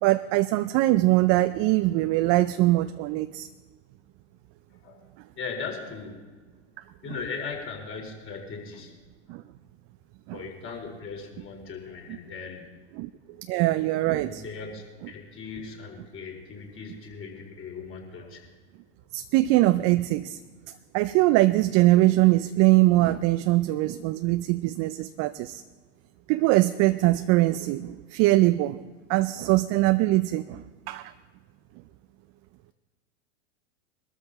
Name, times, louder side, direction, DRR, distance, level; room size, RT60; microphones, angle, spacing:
voice 1, 0.0-3.5 9.3-9.4 10.3-10.4 13.0-13.1 13.5-14.4 19.1-20.4 20.9-25.6 26.3-28.8 29.1-31.1, right 17 dB, 45° right, 11 dB, 0.6 m, -22 dB
voice 2, 5.4-6.2 7.0-8.9 10.3-12.7 14.1-18.4, left 5 dB, 35° left, 1 dB, 4.7 m, -38 dB
22.0 x 13.5 x 4.3 m, 1.4 s
hypercardioid pair, 100°, 37 cm